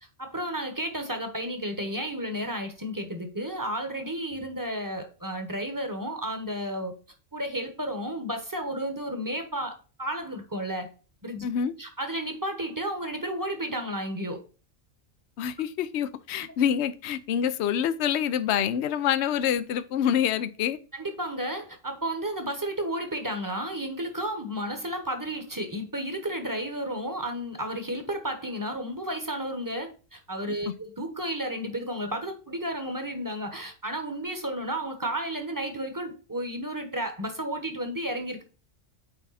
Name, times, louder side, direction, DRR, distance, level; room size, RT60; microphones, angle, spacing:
voice 1, 0.2-6.9 7.3-10.9 11.2-11.4 11.8-14.4 20.9-38.4, right 1 dB, 15° right, 5 dB, 1.2 m, -32 dB
voice 2, 11.4-11.7 15.4-20.8 30.7-30.8, left 9 dB, 65° left, 13 dB, 0.9 m, -26 dB
8.9 x 3.6 x 4.1 m, 0.36 s
omnidirectional pair, 1.3 m